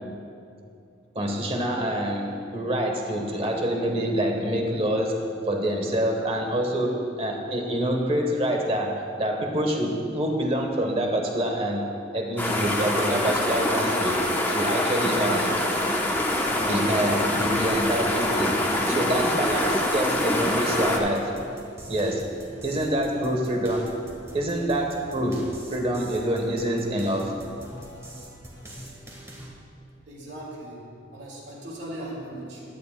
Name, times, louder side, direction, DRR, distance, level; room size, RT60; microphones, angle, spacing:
voice 1, 1.1-11.8 12.1-14.2 14.5-15.5 16.6-18.6 18.9-21.3 21.9-22.2 22.6-23.9 24.3-25.4 25.7-27.4, right 1 dB, 30° right, 2 dB, 1.2 m, -26 dB
sound 1, 12.4-21.0, left 1 dB, 10° left, 0.9 m, -25 dB
sound 2, 16.2-29.5, equal, 15° right, 1.6 m, -43 dB
voice 2, 30.1-32.6, right 1 dB, 65° right, -3 dB, 2.6 m, -38 dB
16.0 x 11.5 x 2.3 m, 2.5 s
head